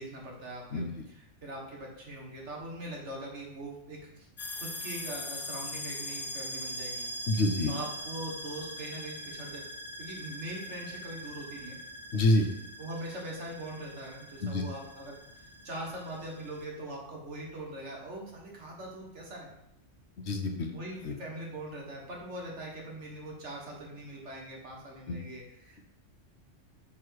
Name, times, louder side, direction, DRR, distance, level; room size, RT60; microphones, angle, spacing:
voice 1, 0.0-4.3 4.5-7.1 7.7-9.6 10.0-11.8 12.8-19.5 20.7-25.8, right 1 dB, 65° right, -2 dB, 1.7 m, -42 dB
sound 1, 4.4-16.7, equal, 35° left, 0.7 m, -42 dB
voice 2, 7.3-7.7 12.1-12.5 14.4-14.6 20.3-20.7 21.0-21.1 25.1-25.2, left 2 dB, 65° left, 4 dB, 1.0 m, -26 dB
6.0 x 3.8 x 4.6 m, 0.81 s
omnidirectional pair, 1.3 m